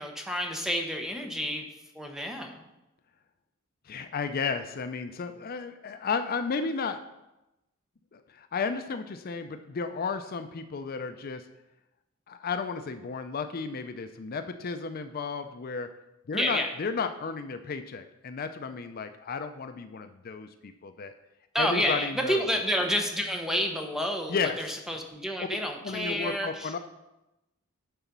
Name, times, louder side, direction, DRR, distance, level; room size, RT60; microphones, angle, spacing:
voice 1, 0.0-1.7 1.9-2.7 16.3-16.7 21.5-26.8, equal, ahead, 3 dB, 0.9 m, -29 dB
voice 2, 3.9-7.0 8.1-11.4 12.3-15.9 16.3-21.1 21.6-22.5 24.3-24.8 25.8-26.8, left 5 dB, 45° left, 9 dB, 0.5 m, -33 dB
10.5 x 4.1 x 5.9 m, 0.94 s
head